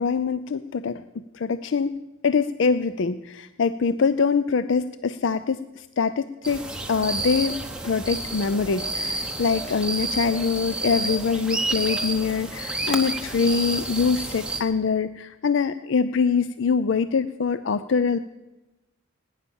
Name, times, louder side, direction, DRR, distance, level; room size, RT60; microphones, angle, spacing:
voice 1, 0.0-18.2, left 5 dB, 60° left, 13 dB, 0.4 m, -24 dB
sound 1, 6.4-14.6, right 2 dB, 5° right, 1.1 m, -30 dB
18.5 x 10.0 x 7.1 m, 1.1 s
head